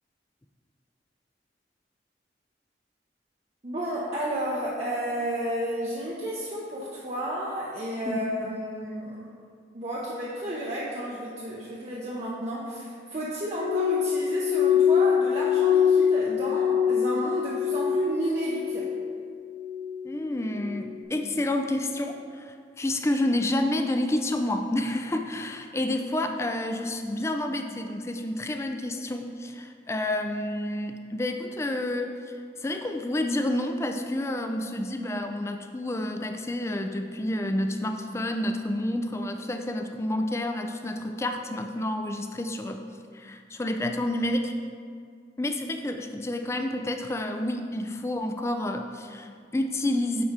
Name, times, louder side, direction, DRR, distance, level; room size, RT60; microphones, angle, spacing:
voice 1, 3.6-9.3 9.7-18.9, right 1 dB, 35° right, -6 dB, 0.7 m, -31 dB
Glass, 13.5-18.1 18.4-19.0 19.4-20.0 20.6-20.8, left 8 dB, 45° left, 1.0 m, -24 dB
voice 2, 20.0-32.1 32.6-42.9 43.1-44.5 45.4-50.2, left 1 dB, 15° left, 5 dB, 0.3 m, -29 dB
9.4 x 4.2 x 3.5 m, 2.2 s
head